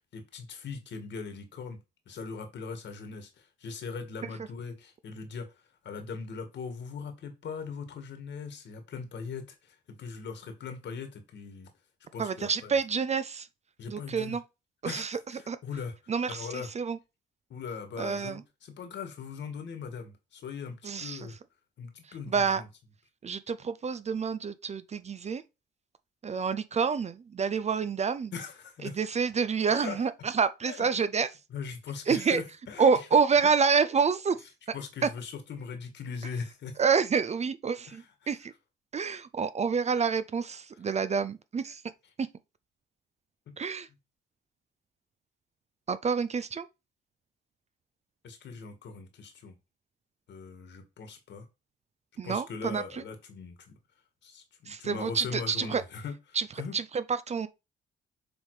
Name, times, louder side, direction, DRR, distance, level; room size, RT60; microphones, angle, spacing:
voice 1, 0.1-1.8 2.1-5.5 5.8-11.7 12.1-12.7 13.8-14.4 14.8-16.7 17.5-21.4 21.8-22.7 28.3-29.0 29.7-30.0 30.7-30.9 31.5-33.1 34.7-36.8 37.9-38.3 48.2-49.5 50.3-51.5 52.2-53.8 54.2-56.1 56.6-56.7, left 5 dB, 65° left, 1.9 m, -40 dB
voice 2, 12.2-13.5 13.9-14.4 14.8-15.2 15.5-15.6 16.1-16.5 16.8-17.0 18.0-18.4 20.8-21.2 22.3-22.6 23.2-25.4 26.2-28.3 28.8-31.3 32.1-32.4 32.8-34.4 35.0-35.1 36.8-38.5 38.9-41.8 42.2-42.3 43.6-43.9 45.9-46.7 52.2-53.0 54.7-55.8 56.3-56.5 56.7-57.5, right 5 dB, 35° right, 0.5 m, -28 dB
7.0 x 3.5 x 4.9 m
cardioid pair, 90°, 20 cm